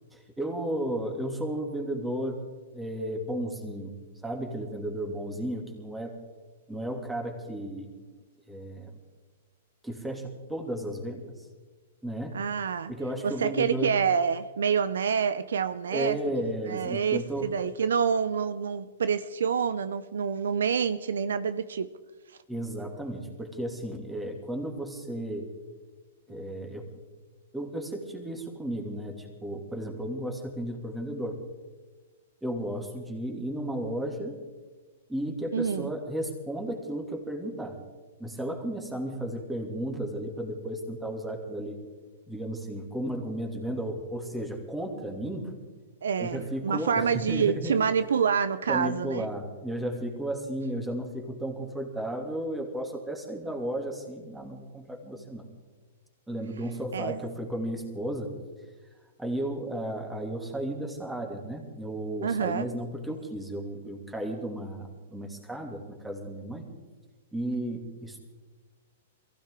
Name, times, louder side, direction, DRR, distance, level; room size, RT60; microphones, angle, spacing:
voice 1, 0.1-2.5 2.7-3.9 4.2-6.2 6.7-7.9 8.5-8.9 9.8-11.4 12.0-12.4 12.9-14.0 15.9-17.6 22.5-25.5 26.3-26.9 27.5-31.4 32.4-34.4 35.1-37.8 38.2-41.8 42.3-45.5 46.2-47.7 48.7-55.5 56.3-58.4 59.2-66.7 67.3-68.2, right 1 dB, 5° right, 2.7 m, -34 dB
voice 2, 12.3-12.9 13.2-16.2 16.7-21.9 35.5-35.9 46.0-49.3 56.9-57.2 62.2-62.7, right 6 dB, 80° right, 0.6 m, -27 dB
23.0 x 15.5 x 3.8 m
hypercardioid pair, 125°, 0 cm